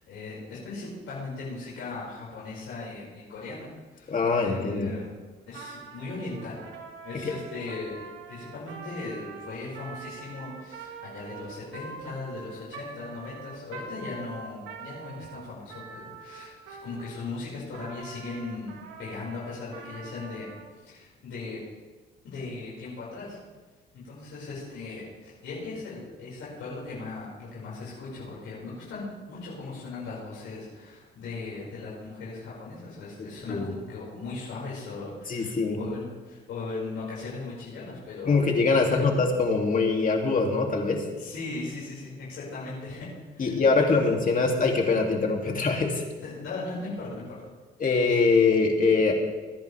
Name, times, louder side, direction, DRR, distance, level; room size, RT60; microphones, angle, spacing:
voice 1, 0.0-3.7 3.9-5.1 5.5-6.6 7.0-8.0 8.3-20.5 20.8-21.6 22.2-23.4 23.9-39.1 41.2-44.0 46.2-47.5, left 3 dB, 85° left, -8 dB, 5.8 m, -38 dB
voice 2, 4.1-4.9 7.2-7.3 33.5-33.7 35.3-35.8 38.3-41.0 43.4-46.0 47.8-49.1, left 4 dB, 45° left, 1 dB, 2.8 m, -23 dB
Trumpet, 5.5-17.2 17.7-20.7, right 4 dB, 90° right, 2.0 m, -44 dB
23.5 x 10.5 x 3.5 m, 1.3 s
cardioid pair, 90°, 20 cm